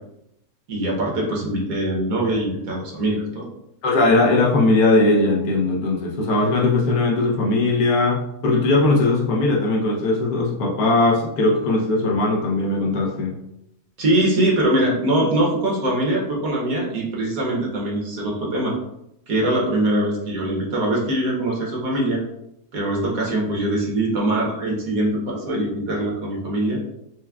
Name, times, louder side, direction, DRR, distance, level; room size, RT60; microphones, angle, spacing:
voice 1, 0.7-3.4 14.0-18.7 19.3-22.2 22.7-26.8, right 1 dB, 65° right, -2 dB, 1.4 m, -22 dB
voice 2, 3.8-13.3, left 2 dB, 70° left, -2 dB, 1.2 m, -19 dB
5.8 x 2.2 x 2.3 m, 0.80 s
omnidirectional pair, 1.7 m